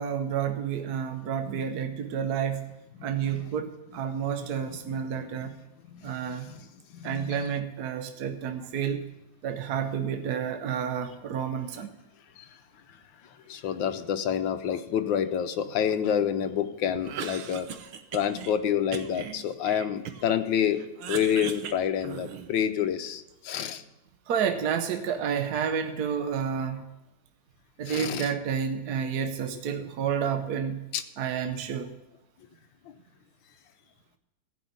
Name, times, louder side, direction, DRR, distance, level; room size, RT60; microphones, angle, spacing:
voice 1, 0.0-2.7 3.0-5.6 6.0-6.5 7.0-9.1 9.4-11.9 24.3-26.9 27.8-30.8 31.2-31.9, right 7 dB, 60° right, 7 dB, 1.1 m, -30 dB
voice 2, 4.9-5.3 5.9-7.5 12.4-12.5 13.5-17.7 18.1-20.8 21.1-23.8 27.8-28.3 30.9-31.0 32.9-33.0, left 9 dB, 75° left, 10 dB, 1.4 m, -28 dB
Cough, 16.9-18.5 18.9-20.4 20.7-22.6, right 8 dB, 85° right, 1.7 m, -38 dB
15.0 x 5.5 x 9.3 m, 0.93 s
omnidirectional pair, 2.2 m